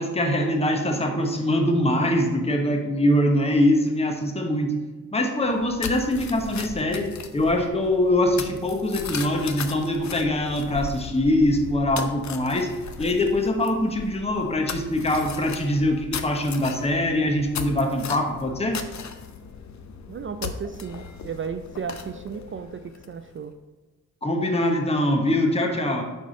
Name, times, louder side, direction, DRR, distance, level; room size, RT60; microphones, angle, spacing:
voice 1, 0.0-4.8 5.1-12.7 13.0-18.8 24.2-26.0, left 1 dB, 15° left, 3 dB, 1.0 m, -23 dB
sound 1, 5.4-23.4, left 6 dB, 50° left, 0.6 m, -37 dB
voice 2, 20.1-23.5, right 6 dB, 35° right, 8 dB, 0.4 m, -34 dB
5.3 x 4.9 x 4.0 m, 1.3 s
supercardioid pair, 45°, 36 cm